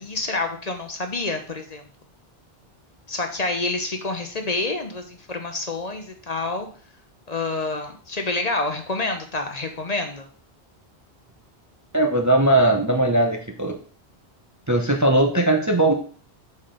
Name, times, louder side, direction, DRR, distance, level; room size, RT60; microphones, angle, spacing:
voice 1, 0.0-1.8 3.1-6.7 7.3-10.3, left 3 dB, 40° left, 5 dB, 0.9 m, -28 dB
voice 2, 11.9-13.8 14.7-15.9, right 1 dB, 20° right, 3 dB, 0.6 m, -19 dB
5.8 x 4.3 x 5.0 m, 0.43 s
omnidirectional pair, 1.1 m